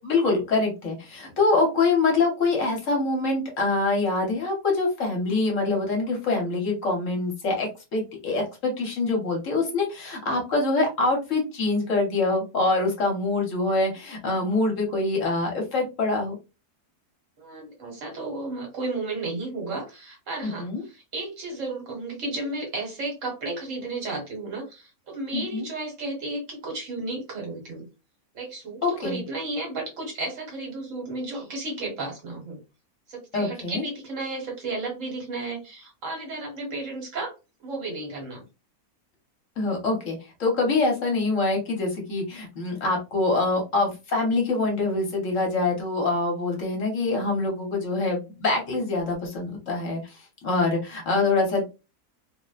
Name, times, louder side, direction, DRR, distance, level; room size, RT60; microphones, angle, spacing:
voice 1, 0.0-16.3 20.4-20.8 25.3-25.7 28.8-29.2 33.3-33.8 39.6-51.6, left 3 dB, 60° left, 1 dB, 1.1 m, -25 dB
voice 2, 17.4-27.8 28.3-32.6 33.1-37.3 37.6-38.4, right 2 dB, 60° right, 0 dB, 1.2 m, -33 dB
2.7 x 2.1 x 2.3 m, 0.28 s
omnidirectional pair, 1.6 m